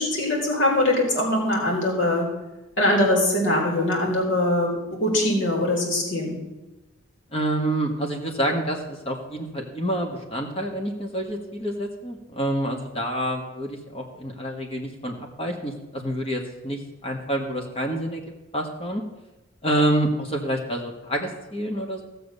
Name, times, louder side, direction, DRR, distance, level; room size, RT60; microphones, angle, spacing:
voice 1, 0.0-2.3 2.8-6.4, left 1 dB, 60° left, -2 dB, 4.3 m, -22 dB
voice 2, 7.3-18.2 18.5-19.0 19.6-22.0, right 1 dB, 30° left, 1 dB, 1.5 m, -27 dB
16.0 x 6.8 x 6.7 m, 1.1 s
head